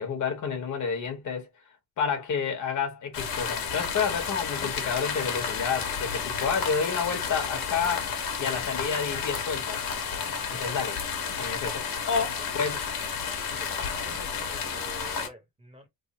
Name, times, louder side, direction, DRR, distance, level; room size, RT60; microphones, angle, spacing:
voice 1, 0.0-1.5 2.0-8.1 8.4-9.8 10.5-11.0 11.4-12.9, left 6 dB, 55° left, 1.1 m, -30 dB
sound 1, 3.1-15.3, left 6 dB, 75° left, 1.3 m, -31 dB
voice 2, 10.5-10.8 11.6-11.8 12.2-12.5 13.5-15.9, right 1 dB, 15° right, 0.9 m, -47 dB
3.3 x 2.0 x 4.1 m
wide cardioid pair, 175°, 36 cm